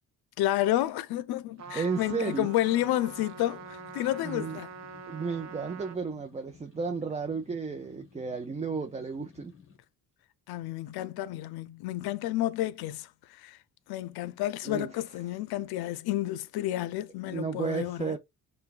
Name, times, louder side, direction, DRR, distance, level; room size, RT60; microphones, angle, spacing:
voice 1, 0.4-4.7 10.5-13.6 13.9-18.2, left 14 dB, 80° left, 0.5 m, -30 dB
sound 1, 1.4-9.8, left 6 dB, 35° left, 1.1 m, -56 dB
Trumpet, 1.6-6.0, right 5 dB, 45° right, 0.8 m, -45 dB
voice 2, 1.7-2.5 4.2-4.6 5.1-9.5 14.6-14.9 17.3-18.2, right 5 dB, 20° right, 0.5 m, -33 dB
5.6 x 2.3 x 2.4 m
cardioid pair, 85°, 37 cm